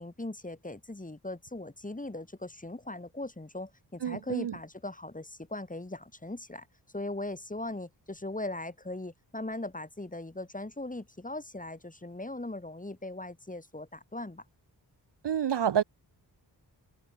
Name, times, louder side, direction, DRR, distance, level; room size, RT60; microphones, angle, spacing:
voice 1, 0.0-6.7 6.9-14.4, left 2 dB, 20° left, 5.6 m, -39 dB
voice 2, 4.0-4.5 15.2-15.8, right 9 dB, 75° right, 1.2 m, -28 dB
cardioid pair, 70°, 42 cm